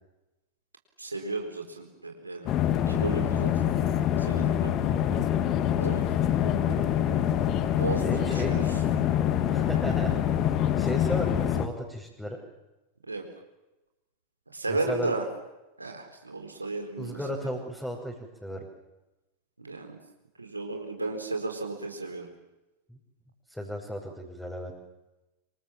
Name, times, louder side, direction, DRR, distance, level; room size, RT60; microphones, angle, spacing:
voice 1, 1.0-2.5 2.9-3.5 4.2-4.7 5.8-6.0 7.7-8.6 13.1-13.2 14.5-15.2 15.8-17.2 19.6-20.0 20.4-22.3, right 3 dB, 80° right, 3 dB, 4.3 m, -33 dB
sound 1, 2.5-11.7, left 10 dB, 35° left, 2.3 m, -25 dB
voice 2, 4.9-5.3 6.4-6.9 8.0-8.6 9.5-12.4 14.7-15.2 17.0-18.1 18.4-18.7 22.9-23.0 23.5-24.7, equal, 5° left, -3 dB, 6.1 m, -35 dB
27.5 x 26.5 x 7.3 m, 1.0 s
figure-of-eight pair, 90°, 0 cm